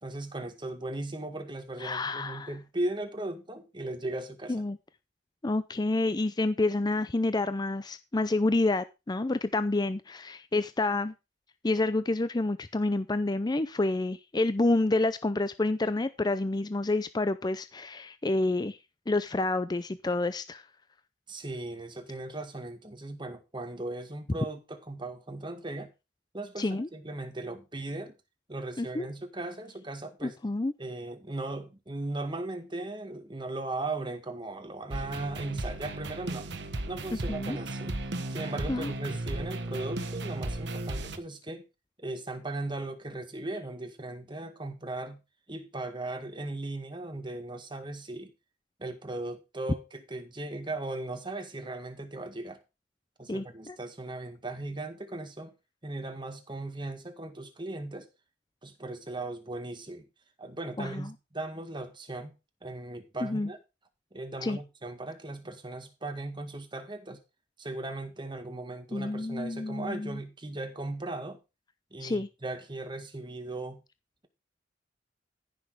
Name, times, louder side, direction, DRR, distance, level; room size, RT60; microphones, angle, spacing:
voice 1, 0.0-4.6 21.3-25.9 26.3-28.2 28.5-30.4 30.8-36.5 36.9-38.0 38.3-41.6 42.0-45.2 45.5-48.3 48.8-52.6 53.2-55.5 55.8-58.1 58.6-60.1 60.4-62.3 62.6-63.6 64.1-67.2 67.6-71.4 71.9-73.8, right 2 dB, 25° right, 1.8 m, -37 dB
voice 2, 1.8-2.5 4.5-4.8 5.4-11.1 11.6-18.8 19.1-20.6 26.6-26.9 28.8-29.1 30.2-30.7 37.3-37.6 38.7-38.9 53.3-53.8 60.8-61.1 63.2-63.5 64.4-64.6 68.9-70.2 72.0-72.3, left 2 dB, 20° left, 0.5 m, -29 dB
sound 1, 34.9-41.2, right 2 dB, 70° right, 1.4 m, -35 dB
14.5 x 6.2 x 4.8 m
head